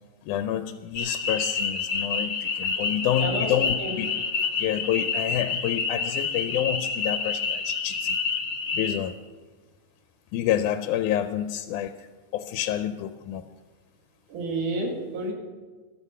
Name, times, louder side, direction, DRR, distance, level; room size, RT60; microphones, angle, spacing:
voice 1, 0.3-4.2 4.6-8.2 8.7-9.1 10.3-11.9 12.3-13.5, left 11 dB, 90° left, 10 dB, 2.1 m, -28 dB
sound 1, 0.9-9.0, left 4 dB, 55° left, 1.7 m, -28 dB
voice 2, 3.2-3.5 3.8-3.9 14.3-15.3, right 2 dB, 85° right, 1 dB, 3.6 m, -29 dB
13.5 x 12.5 x 5.5 m, 1.4 s
omnidirectional pair, 3.5 m